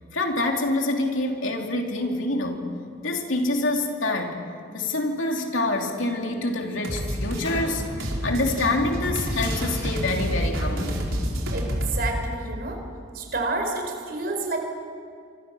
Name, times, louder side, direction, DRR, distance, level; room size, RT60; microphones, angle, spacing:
voice 1, 0.1-2.7 3.0-4.4 4.7-11.0, left 2 dB, 75° left, 2 dB, 2.9 m, -26 dB
sound 1, 6.8-12.0, equal, 90° right, 5.0 m, -28 dB
sound 2, 7.1-11.3, left 2 dB, 60° left, 7.0 m, -42 dB
voice 2, 11.5-12.8 13.1-14.6, right 2 dB, 50° right, 3 dB, 4.8 m, -29 dB
27.0 x 26.0 x 7.0 m, 2.2 s
head